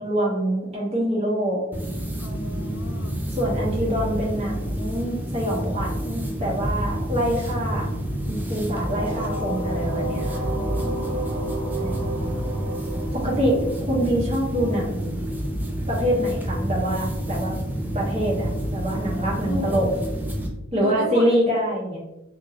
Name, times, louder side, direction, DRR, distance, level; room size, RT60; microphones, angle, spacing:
voice 1, 0.0-1.6 3.4-7.9 8.3-10.4 11.8-12.0 13.1-15.0 15.9-17.5 17.9-19.9 20.7-22.0, equal, 30° right, -4 dB, 0.9 m, -25 dB
sound 1, 1.7-20.5, equal, 10° right, 0.3 m, -28 dB
voice 2, 2.2-3.2 10.4-11.1 19.4-20.0 20.7-21.4, left 3 dB, 65° left, 4 dB, 0.4 m, -34 dB
sound 2, 8.9-14.6, right 2 dB, 85° right, 0.9 m, -32 dB
2.6 x 2.6 x 2.7 m, 0.97 s
head